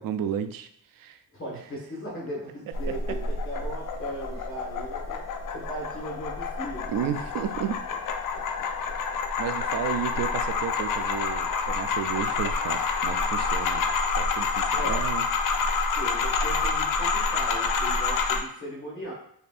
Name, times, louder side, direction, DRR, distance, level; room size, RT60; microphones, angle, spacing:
voice 1, 0.0-1.2 6.9-7.7 9.4-15.2 15.7-15.8, right 8 dB, 60° right, 10 dB, 0.5 m, -32 dB
voice 2, 1.3-5.2 5.5-6.9 8.3-8.9 14.7-15.1 15.9-19.1, right 1 dB, 35° left, -5 dB, 1.6 m, -37 dB
sound 1, 2.7-18.4, left 4 dB, 55° left, 0.6 m, -28 dB
5.0 x 2.6 x 2.5 m, 0.68 s
cardioid pair, 85°, 39 cm